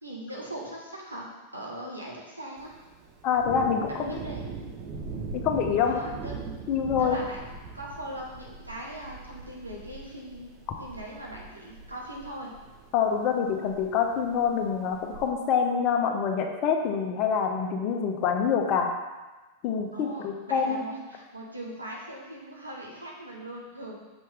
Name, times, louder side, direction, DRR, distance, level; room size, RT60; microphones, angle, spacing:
voice 1, 0.0-2.7 3.9-4.4 5.8-6.4 7.0-7.4 7.7-10.5 10.8-12.5 19.9-23.9, right 1 dB, 85° right, -3 dB, 1.5 m, -40 dB
Thunder, 2.6-15.3, right 4 dB, 40° right, 0.9 m, -41 dB
voice 2, 3.2-4.1 5.3-6.0 6.7-7.2 12.9-18.9 19.6-20.8, left 7 dB, 40° left, 3 dB, 0.9 m, -26 dB
7.0 x 6.1 x 3.4 m, 1.2 s
figure-of-eight pair, 90°, 0 cm